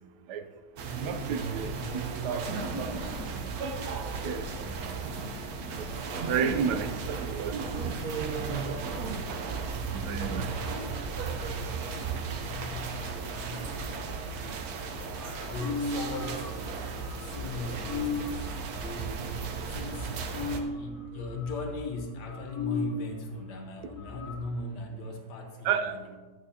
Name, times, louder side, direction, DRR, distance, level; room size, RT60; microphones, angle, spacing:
sound 1, 0.8-20.6, right 4 dB, 70° right, 1.3 m, -35 dB
voice 1, 1.0-2.9 3.4-3.5 4.2-5.0 5.8-5.9 6.2-8.0 9.9-10.5 25.6-26.0, right 7 dB, 90° right, 9 dB, 1.2 m, -32 dB
voice 2, 10.1-11.1 12.4-14.6 14.9-16.8 17.1-20.1 20.5-26.2, left 2 dB, 90° left, 3 dB, 1.6 m, -39 dB
sound 2, 15.3-23.0 23.4-23.5 23.7-24.4, left 4 dB, 55° left, 1.2 m, -37 dB
11.0 x 8.8 x 2.8 m, 1.4 s
omnidirectional pair, 1.8 m